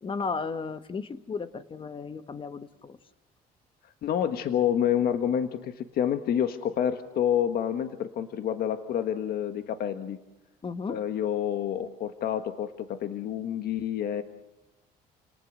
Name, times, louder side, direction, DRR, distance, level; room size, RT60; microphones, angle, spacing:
voice 1, 0.0-3.0 10.6-11.0, left 4 dB, 30° left, 11 dB, 1.5 m, -34 dB
voice 2, 4.0-10.2 10.9-14.2, left 9 dB, 65° left, 8 dB, 1.5 m, -28 dB
30.0 x 19.0 x 6.5 m, 0.99 s
cardioid pair, 110°, 17 cm